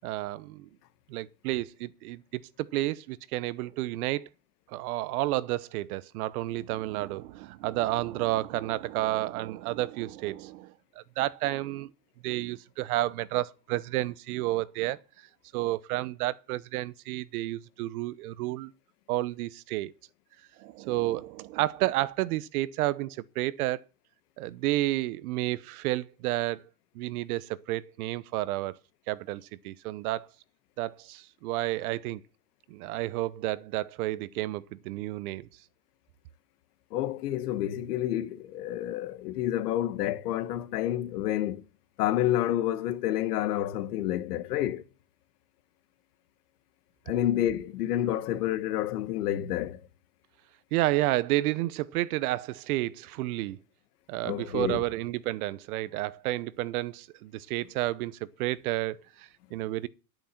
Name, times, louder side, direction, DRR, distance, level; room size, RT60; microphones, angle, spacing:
voice 1, 0.0-0.7 1.1-4.3 4.7-11.9 12.2-15.3 15.5-18.7 19.1-19.9 20.6-23.8 24.4-26.6 26.9-28.8 29.1-30.3 30.8-32.2 32.7-35.5 50.7-53.6 54.1-59.9, right 17 dB, 70° right, 0.9 m, -31 dB
voice 2, 36.9-41.6 42.0-44.8 47.1-49.8 54.2-54.8, left 12 dB, 85° left, 1.5 m, -29 dB
10.5 x 9.2 x 5.9 m
supercardioid pair, 125°, 45 cm